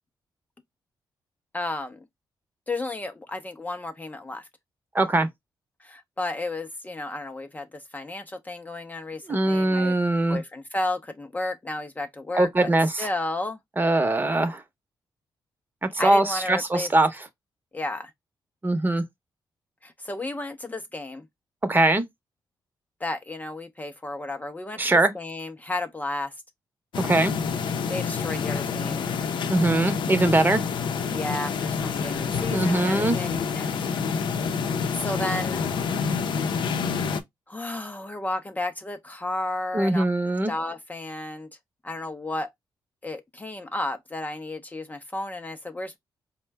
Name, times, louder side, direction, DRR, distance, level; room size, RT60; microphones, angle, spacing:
voice 1, 1.5-2.0 2.7-4.5 5.8-10.0 10.3-12.7 13.0-13.6 16.0-16.9 17.7-18.1 19.8-21.2 23.0-26.3 27.9-29.1 31.1-33.3 33.5-33.9 34.9-35.6 37.5-40.0 40.5-41.5 41.8-42.5 43.0-46.0, left 2 dB, 20° left, 0.5 m, -32 dB
voice 2, 4.9-5.3 9.3-10.4 12.3-13.1 13.8-14.6 15.8-17.1 18.6-19.0 21.7-22.0 24.8-25.1 27.0-27.3 29.5-30.6 32.5-33.2 39.7-40.5, right 2 dB, 25° right, 0.8 m, -22 dB
sound 1, 26.9-37.2, left 6 dB, 75° left, 0.6 m, -27 dB
4.3 x 2.1 x 3.3 m
cardioid pair, 85°, 8 cm